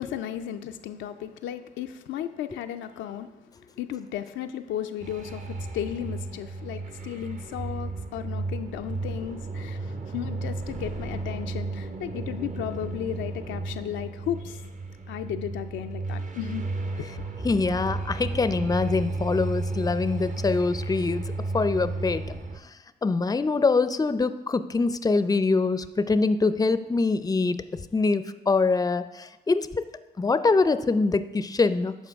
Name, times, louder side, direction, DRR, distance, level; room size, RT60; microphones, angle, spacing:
voice 1, 0.0-3.3 3.8-14.6 15.1-16.6, left 10 dB, 80° left, 7 dB, 0.4 m, -34 dB
sound 1, 5.0-22.6, right 3 dB, 40° right, 0.9 m, -33 dB
voice 2, 17.4-21.2 21.5-22.2 23.0-27.6 27.9-29.7 30.2-31.9, left 3 dB, 20° left, 13 dB, 0.5 m, -24 dB
12.5 x 4.5 x 3.5 m, 1.1 s
hypercardioid pair, 40°, 19 cm